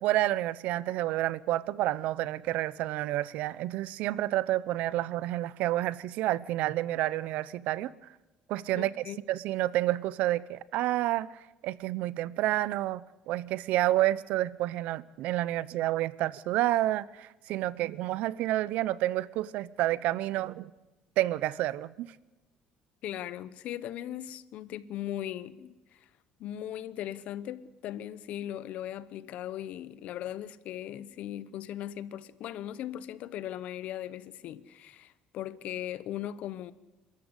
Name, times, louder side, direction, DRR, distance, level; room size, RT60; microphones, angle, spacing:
voice 1, 0.0-7.9 8.5-20.7 21.2-22.1, right 15 dB, 70° right, 0.7 m, -29 dB
voice 2, 8.7-9.2 23.0-26.1 26.4-36.7, left 12 dB, 65° left, 1.0 m, -38 dB
27.5 x 13.5 x 8.3 m
cardioid pair, 125°, 3 cm